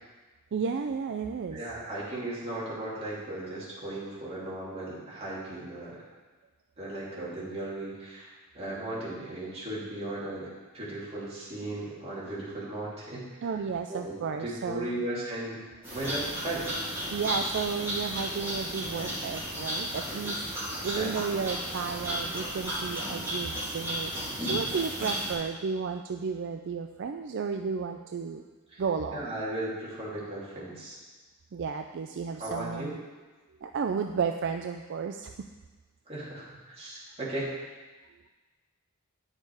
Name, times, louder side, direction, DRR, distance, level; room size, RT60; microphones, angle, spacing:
voice 1, 0.5-1.6 13.4-15.0 17.1-28.5 28.8-29.3 31.5-33.0 33.6-35.3, right 5 dB, 55° right, 5 dB, 0.4 m, -33 dB
voice 2, 1.5-6.0 6.8-13.6 13.9-15.6 15.9-16.7 17.2-17.3 20.9-21.1 28.7-28.8 29.1-31.0 32.4-32.9 36.1-37.5, right 1 dB, 30° right, -8 dB, 2.9 m, -36 dB
sound 1, 15.8-25.3, equal, 10° right, 2.8 m, -34 dB
9.8 x 6.6 x 4.8 m, 1.3 s
head